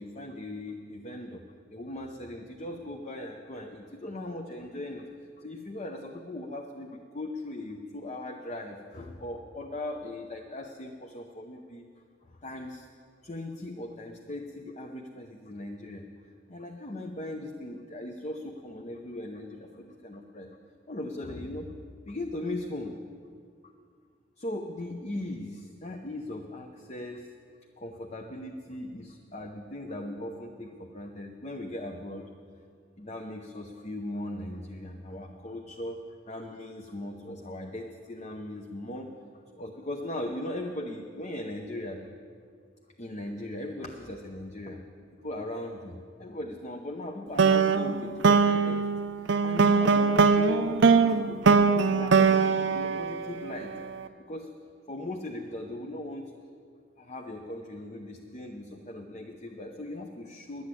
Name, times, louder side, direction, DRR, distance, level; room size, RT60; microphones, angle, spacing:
voice 1, 0.0-1.4 1.7-5.1 5.4-11.8 12.4-12.9 13.2-16.0 16.5-20.5 20.9-21.7 22.1-22.9 23.6-23.7 24.4-27.3 27.8-32.3 33.0-36.0 36.3-39.1 39.6-42.1 43.0-44.8 45.2-48.8 49.2-53.7 54.3-54.5 54.9-56.3 57.0-60.7, left 1 dB, 35° left, 2 dB, 0.8 m, -39 dB
sound 1, 47.4-53.8, right 5 dB, 65° right, 0.5 m, -22 dB
11.0 x 8.1 x 9.8 m, 2.1 s
head